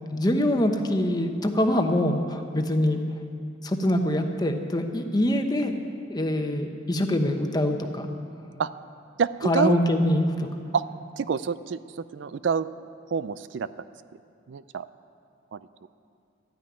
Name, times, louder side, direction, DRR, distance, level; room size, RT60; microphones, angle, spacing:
voice 1, 0.1-3.0 3.6-5.7 6.1-8.1 9.4-10.5, left 1 dB, 20° left, 5 dB, 1.0 m, -24 dB
voice 2, 9.2-9.8 10.7-10.8 11.2-12.7 13.1-13.7 14.5-14.9 15.5-15.9, right 6 dB, 65° right, 15 dB, 0.4 m, -27 dB
13.0 x 9.8 x 9.6 m, 2.4 s
head